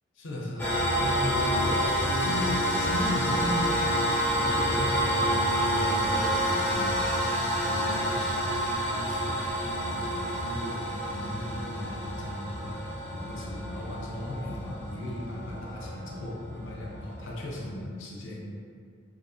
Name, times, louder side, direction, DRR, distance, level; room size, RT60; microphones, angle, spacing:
voice 1, 0.2-7.4 7.6-9.4 9.8-12.7 13.1-18.4, left 1 dB, 65° left, -3 dB, 0.5 m, -37 dB
sound 1, 0.6-17.7, equal, 10° left, 0.4 m, -28 dB
2.7 x 2.0 x 2.6 m, 2.3 s
head